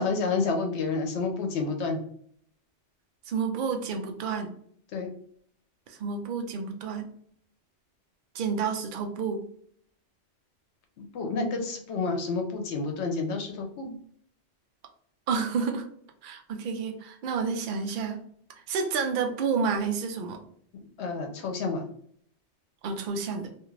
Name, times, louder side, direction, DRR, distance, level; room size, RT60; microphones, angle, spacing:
voice 1, 0.0-2.0 4.9-5.1 11.1-13.9 21.0-21.8, left 4 dB, 85° left, 3 dB, 0.9 m, -29 dB
voice 2, 3.3-4.5 5.9-7.1 8.3-9.4 15.3-15.9 16.2-18.2 18.6-20.4 22.8-23.5, right 5 dB, 60° right, 4 dB, 0.6 m, -30 dB
2.5 x 2.4 x 3.1 m, 0.63 s
omnidirectional pair, 1.1 m